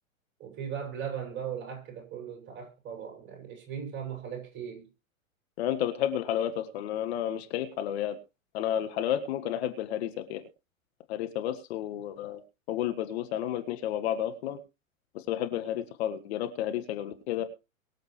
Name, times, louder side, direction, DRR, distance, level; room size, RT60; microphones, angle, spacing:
voice 1, 0.4-4.9, right 8 dB, 25° right, 6.5 m, -38 dB
voice 2, 5.6-8.1 8.5-10.4 11.1-12.4 12.7-14.6 15.1-17.4, left 11 dB, 50° left, 1.7 m, -31 dB
23.0 x 7.7 x 3.3 m
figure-of-eight pair, 105°, 41 cm